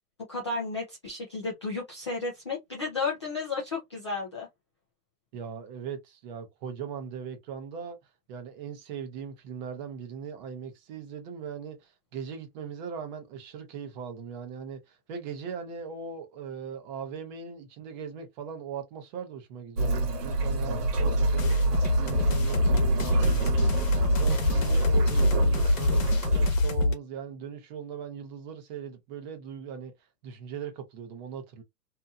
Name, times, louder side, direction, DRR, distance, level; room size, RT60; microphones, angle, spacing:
voice 1, 0.3-4.5, left 3 dB, 20° left, 0.3 m, -33 dB
voice 2, 5.3-8.0 8.3-29.9 30.2-31.6, right 7 dB, 30° right, 0.7 m, -39 dB
sound 1, 19.8-26.5, right 2 dB, 85° right, 1.1 m, -27 dB
sound 2, 21.4-26.9, left 2 dB, 60° left, 1.1 m, -25 dB
2.7 x 2.5 x 2.3 m
hypercardioid pair, 140°, 46 cm